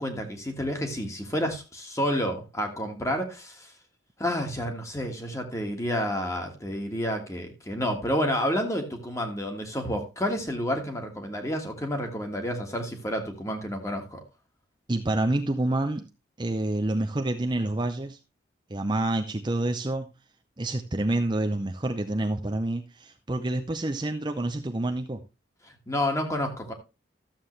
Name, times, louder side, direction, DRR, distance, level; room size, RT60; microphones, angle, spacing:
voice 1, 0.0-3.7 4.2-14.2 25.6-26.7, equal, 15° left, 4 dB, 1.6 m, -30 dB
voice 2, 14.9-16.0 16.4-18.2 18.7-20.1 20.6-25.2, right 2 dB, 25° right, 5 dB, 0.6 m, -28 dB
13.0 x 7.4 x 3.2 m, 0.27 s
head